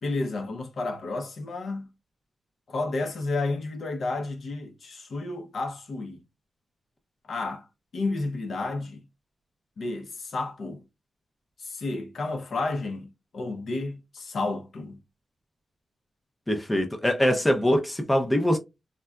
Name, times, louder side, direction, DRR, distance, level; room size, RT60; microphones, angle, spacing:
voice 1, 0.0-1.9 2.7-6.2 7.3-7.7 7.9-9.0 9.8-10.8 11.6-15.0, left 3 dB, 55° left, 0.6 m, -31 dB
voice 2, 16.5-18.6, equal, 10° left, 0.4 m, -23 dB
3.7 x 2.2 x 2.2 m
wide cardioid pair, 180°, 0 cm